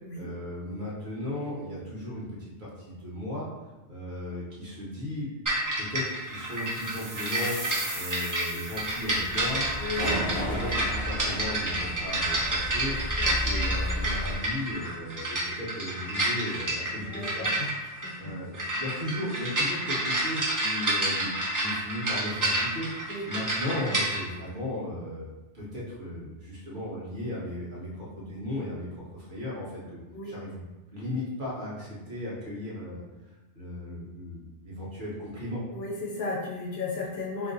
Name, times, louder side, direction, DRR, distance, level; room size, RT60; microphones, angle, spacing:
voice 1, 0.1-3.5 3.9-5.3 5.7-7.6 7.9-9.7 10.0-17.5 18.2-25.3 25.5-30.0 30.2-30.6 30.9-33.0 33.5-35.6, left 1 dB, 45° right, -6 dB, 1.0 m, -36 dB
sound 1, 5.5-24.2, right 1 dB, 30° right, 0.4 m, -29 dB
sound 2, 6.5-9.5, right 2 dB, 90° right, 1.1 m, -40 dB
sound 3, 8.7-14.4, equal, 25° left, 0.5 m, -33 dB
voice 2, 9.8-10.1 10.4-10.5 13.2-13.3 17.0-17.7 18.0-18.1 23.1-23.3 30.1-30.3 35.7-37.5, left 3 dB, 65° left, -3 dB, 0.8 m, -34 dB
3.5 x 2.6 x 2.5 m, 1.1 s
omnidirectional pair, 1.2 m